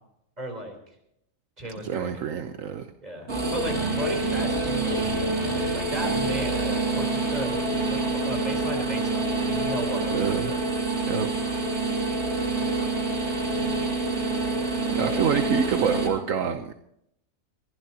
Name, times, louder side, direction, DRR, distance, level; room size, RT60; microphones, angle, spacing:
voice 1, 0.4-0.8 1.6-2.2 3.0-10.6 12.8-13.8 14.3-15.0, right 1 dB, 30° right, 3 dB, 4.0 m, -36 dB
voice 2, 1.6-2.9 10.1-10.5 11.1-11.3 14.9-16.7, right 7 dB, 75° right, 6 dB, 1.3 m, -27 dB
sound 1, 3.3-16.1, right 3 dB, 55° right, 3.3 m, -27 dB
22.5 x 15.5 x 2.9 m, 0.75 s
omnidirectional pair, 1.4 m